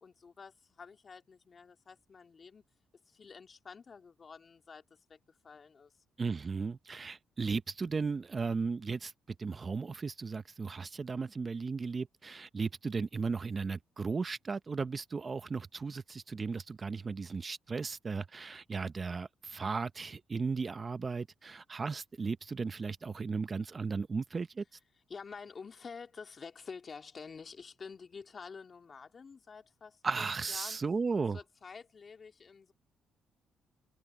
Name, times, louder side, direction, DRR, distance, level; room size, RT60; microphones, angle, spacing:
voice 1, 0.0-2.6 3.1-5.9 25.1-30.8 31.3-32.7, left 5 dB, 40° left, 2.4 m, -49 dB
voice 2, 6.2-9.1 9.4-24.6 30.0-31.4, right 4 dB, 35° right, 0.8 m, -35 dB
cardioid pair, 90°, 0 cm